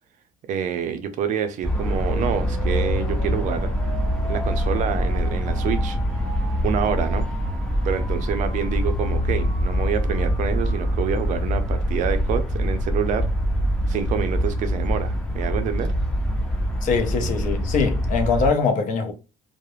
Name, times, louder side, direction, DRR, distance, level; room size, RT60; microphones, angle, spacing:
voice 1, 0.5-3.7 4.3-6.0 6.6-7.3 7.8-13.3 13.9-15.9, right 8 dB, 55° right, 0.4 m, -27 dB
sound 1, 1.6-18.5, equal, 5° left, 0.5 m, -24 dB
sound 2, 1.8-11.8, right 1 dB, 15° right, 0.8 m, -40 dB
voice 2, 16.8-19.1, left 5 dB, 55° left, 0.6 m, -22 dB
2.4 x 2.0 x 3.0 m
cardioid pair, 150°, 16 cm